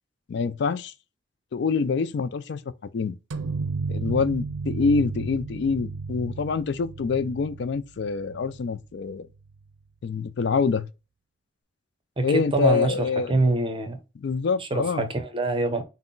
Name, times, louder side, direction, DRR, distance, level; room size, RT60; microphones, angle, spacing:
voice 1, 0.3-0.9 1.5-2.6 2.9-3.2 3.9-9.3 10.0-10.9 12.2-13.4 14.2-15.1, left 5 dB, 60° left, 0.4 m, -25 dB
sound 1, 3.3-8.8, right 4 dB, 90° right, 0.5 m, -33 dB
voice 2, 12.2-14.0 14.6-15.8, right 2 dB, 25° right, 0.7 m, -25 dB
5.7 x 2.1 x 3.8 m
head